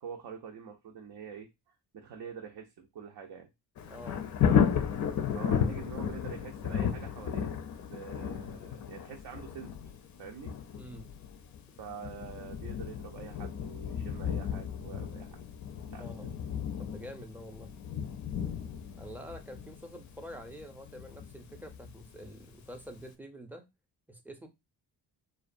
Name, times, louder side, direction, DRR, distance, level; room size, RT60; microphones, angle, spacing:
voice 1, 0.0-3.5 5.3-7.5 7.8-9.7 10.2-10.5 11.8-15.4 15.9-16.3, right 7 dB, 65° right, 0.6 m, -46 dB
Thunder, 3.8-22.5 23.0-23.1, left 8 dB, 50° left, 0.4 m, -34 dB
voice 2, 3.9-4.2 5.6-5.8 10.8-11.1 12.5-12.6 16.0-16.3 16.8-17.7 19.0-23.7 24.1-24.5, equal, 5° right, 0.5 m, -47 dB
2.4 x 2.2 x 2.5 m
cardioid pair, 75°, 40 cm